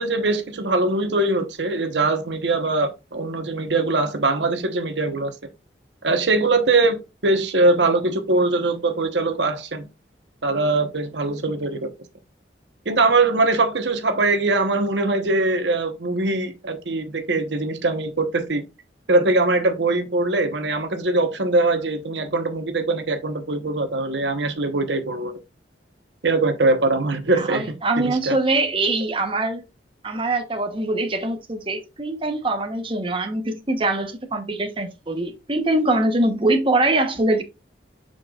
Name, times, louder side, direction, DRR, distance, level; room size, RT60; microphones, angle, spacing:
voice 1, 0.0-5.3 6.0-7.0 7.2-9.9 10.4-11.9 12.8-18.6 19.1-25.4 26.2-28.3, right 2 dB, 85° right, 1.1 m, -22 dB
voice 2, 27.3-29.6 30.0-37.4, right 2 dB, 30° right, 1.0 m, -23 dB
7.7 x 5.7 x 2.4 m
head